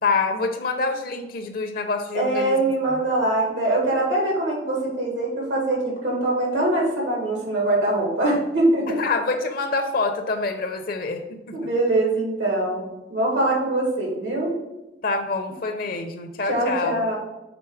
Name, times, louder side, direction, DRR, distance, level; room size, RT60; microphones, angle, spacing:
voice 1, 0.0-2.6 2.9-3.0 9.0-11.7 15.0-17.0, left 3 dB, 50° left, 6 dB, 0.7 m, -26 dB
voice 2, 2.1-9.0 11.5-12.8 13.1-14.5 16.5-17.1, right 1 dB, 85° right, -2 dB, 1.8 m, -23 dB
6.0 x 3.9 x 4.9 m, 0.96 s
head